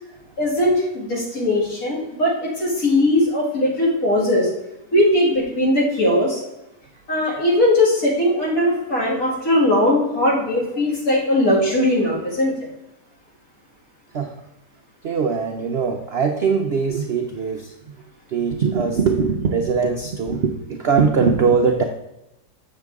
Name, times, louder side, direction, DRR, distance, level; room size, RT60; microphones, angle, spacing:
voice 1, 0.4-4.5 4.9-6.4 7.1-12.6, left 1 dB, 55° left, -4 dB, 2.9 m, -19 dB
voice 2, 15.0-17.9 18.3-21.8, right 5 dB, 60° right, 3 dB, 0.6 m, -21 dB
7.8 x 6.6 x 3.5 m, 0.93 s
omnidirectional pair, 1.8 m